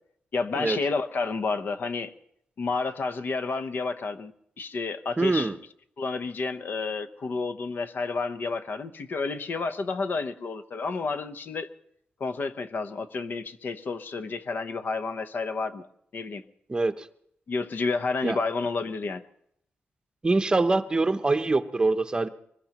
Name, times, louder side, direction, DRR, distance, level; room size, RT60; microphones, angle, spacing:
voice 1, 0.3-2.1 2.6-5.5 6.0-11.7 12.2-15.9 16.1-16.4 17.5-19.3, left 4 dB, 55° left, 10 dB, 0.8 m, -30 dB
voice 2, 5.2-5.6 16.7-17.1 18.2-18.4 20.2-22.3, right 3 dB, 25° right, 9 dB, 0.7 m, -24 dB
24.0 x 20.0 x 3.0 m, 0.71 s
wide cardioid pair, 130°, 4 cm